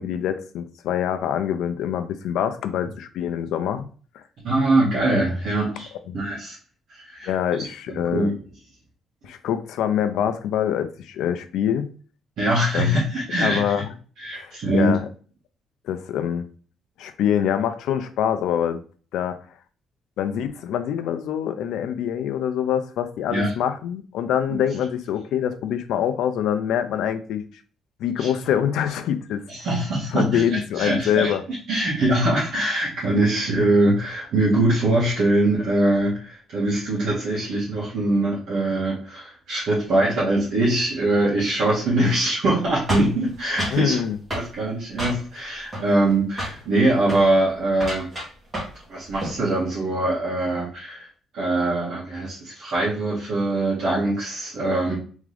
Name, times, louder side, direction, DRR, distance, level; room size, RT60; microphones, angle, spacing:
voice 1, 0.0-4.2 6.1-6.2 7.3-8.3 9.2-12.0 12.7-13.0 13.4-13.9 14.3-15.1 15.8-16.4 17.0-18.8 19.1-19.4 20.2-27.4 28.0-29.4 30.1-31.4 43.7-44.2, left 9 dB, 85° left, 0.5 m, -25 dB
voice 2, 4.4-6.6 6.9-7.3 7.9-8.3 12.4-13.7 14.2-14.9 23.3-23.5 28.2-28.3 29.5-31.3 31.7-44.0 44.3-48.1 48.9-51.1 51.3-55.0, right 1 dB, 65° right, 1.9 m, -22 dB
sound 1, 42.9-43.8 44.3-44.5 45.0-45.4 45.7-46.1 46.4-46.6 47.0-47.3 47.7-48.8 49.1-49.4, equal, 15° right, 1.9 m, -30 dB
3.7 x 3.6 x 3.3 m
cardioid pair, 165°, 0 cm